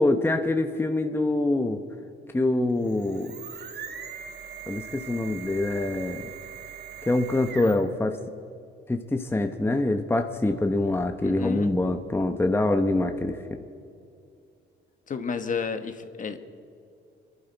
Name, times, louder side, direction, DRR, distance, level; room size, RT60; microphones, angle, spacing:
voice 1, 0.0-1.8 2.3-3.3 4.7-6.3 7.0-8.2 8.9-13.6, left 2 dB, 10° left, 6 dB, 0.9 m, -25 dB
sound 1, 2.7-8.0, right 8 dB, 55° right, 1.5 m, -41 dB
voice 2, 11.2-11.7 15.1-16.4, left 5 dB, 40° left, 8 dB, 1.2 m, -31 dB
26.0 x 11.5 x 4.5 m, 2.4 s
cardioid pair, 90°, 20 cm